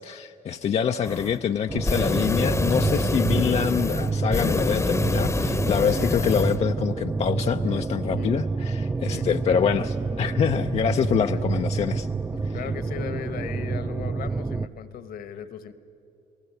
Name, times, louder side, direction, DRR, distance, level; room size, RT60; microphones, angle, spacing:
voice 1, 0.0-12.1, left 8 dB, 40° left, 7 dB, 0.5 m, -25 dB
sound 1, 1.0-1.4 1.7-6.6, left 3 dB, 15° left, 0.9 m, -27 dB
sound 2, 1.7-14.7, right 4 dB, 15° right, 0.5 m, -28 dB
voice 2, 6.0-6.3 8.2-8.3 9.1-9.4 11.3-11.4 12.3-15.7, left 8 dB, 60° left, 12 dB, 1.2 m, -38 dB
28.0 x 18.5 x 8.2 m, 2.9 s
cardioid pair, 110°, 17 cm